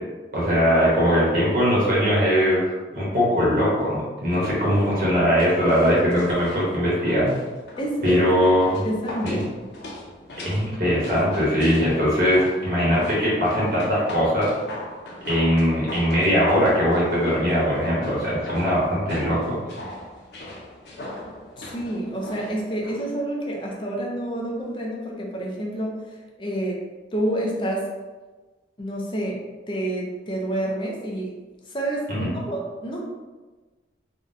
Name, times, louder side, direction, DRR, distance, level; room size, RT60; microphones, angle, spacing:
voice 1, 0.3-7.4 8.0-8.8 9.2-9.4 10.4-14.5 15.3-19.6 32.1-32.3, equal, 55° right, -7 dB, 1.0 m, -21 dB
sound 1, 4.3-23.1 23.4-23.5, left 1 dB, 75° left, 0.6 m, -39 dB
voice 2, 7.8-8.2 8.8-9.4 21.6-26.0 26.4-26.8 27.1-27.9 28.8-29.4 29.7-31.3 31.7-33.0, right 1 dB, 30° left, -2 dB, 0.5 m, -28 dB
3.6 x 2.2 x 2.6 m, 1.3 s
head